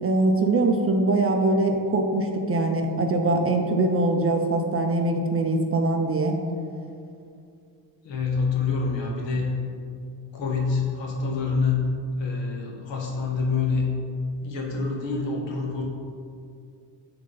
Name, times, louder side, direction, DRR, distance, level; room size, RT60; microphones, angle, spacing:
voice 1, 0.0-6.4, right 2 dB, 30° right, 4 dB, 0.6 m, -22 dB
voice 2, 8.0-9.6 10.3-13.9 14.4-15.8, left 4 dB, 75° left, -1 dB, 1.5 m, -26 dB
8.8 x 3.9 x 3.9 m, 2.4 s
cardioid pair, 105°, 44 cm